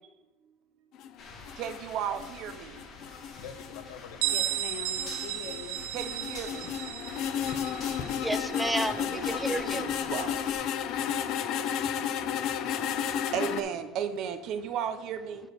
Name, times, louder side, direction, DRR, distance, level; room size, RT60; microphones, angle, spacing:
sound 1, 0.9-13.6, left 8 dB, 45° left, 0.6 m, -33 dB
sound 2, 1.2-10.5, left 3 dB, 30° left, 1.6 m, -48 dB
voice 1, 1.6-2.5 5.9-6.5 9.0-10.3 13.3-15.4, right 8 dB, 45° right, 0.7 m, -34 dB
voice 2, 3.4-5.9, left 8 dB, 80° left, 0.9 m, -43 dB
Bell, 4.2-9.7, right 13 dB, 75° right, 0.6 m, -35 dB
voice 3, 7.9-9.9, right 1 dB, 5° right, 0.4 m, -32 dB
9.1 x 4.0 x 6.5 m
cardioid pair, 165°, 0 cm